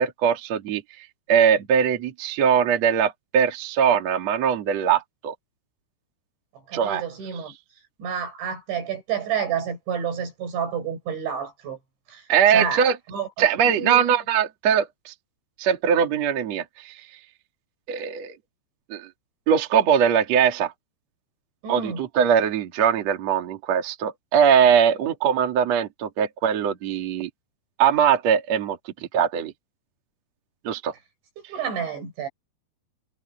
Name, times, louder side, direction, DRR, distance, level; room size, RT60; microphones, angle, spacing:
voice 1, 0.0-5.3 6.7-7.0 12.3-13.0 13.4-15.1 15.6-17.0 17.9-18.4 18.9-19.1 19.5-20.7 21.7-27.3 27.8-28.8 29.1-29.5 30.6-30.9, right 8 dB, 45° right, 2.7 m, -21 dB
voice 2, 6.7-7.6 8.0-11.8 12.1-12.8 13.1-13.3 13.8-14.1 21.6-22.0 31.4-32.3, right 7 dB, 80° right, 8.6 m, -29 dB
omnidirectional pair, 5.2 m